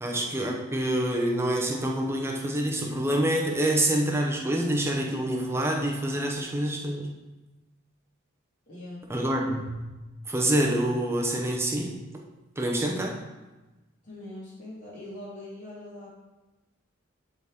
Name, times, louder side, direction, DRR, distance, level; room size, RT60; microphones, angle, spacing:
voice 1, 0.0-7.1 9.1-9.8 10.3-12.0 12.6-13.2, right 1 dB, 15° right, 0 dB, 0.9 m, -26 dB
voice 2, 8.7-9.0 14.0-16.1, left 1 dB, 40° left, -8 dB, 2.3 m, -42 dB
12.0 x 4.1 x 3.7 m, 1.1 s
head